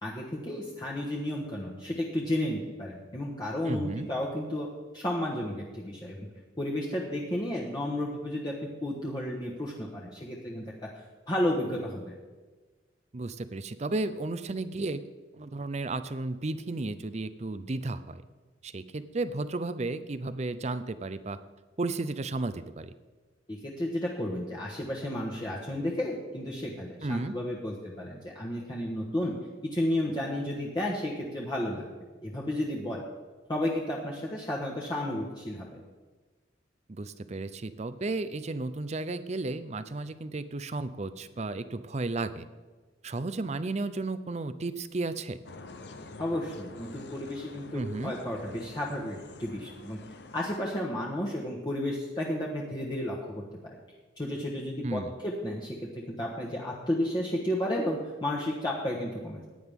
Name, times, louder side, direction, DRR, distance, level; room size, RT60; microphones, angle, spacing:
voice 1, 0.0-4.7 4.9-6.3 6.6-8.5 8.8-10.6 11.3-12.1 23.5-29.3 29.7-31.8 32.2-33.0 33.5-35.8 46.2-50.0 50.3-53.7 54.2-59.4, left 1 dB, 25° left, -5 dB, 1.3 m, -32 dB
voice 2, 3.6-4.1 13.1-15.0 15.3-18.2 18.6-21.4 21.8-22.9 27.0-27.3 36.9-42.5 43.0-45.4 47.7-48.1 54.8-55.1, right 2 dB, 35° right, 13 dB, 0.5 m, -33 dB
sound 1, 45.4-50.6, left 3 dB, 65° left, 0.7 m, -47 dB
15.5 x 9.9 x 3.6 m, 1.3 s
head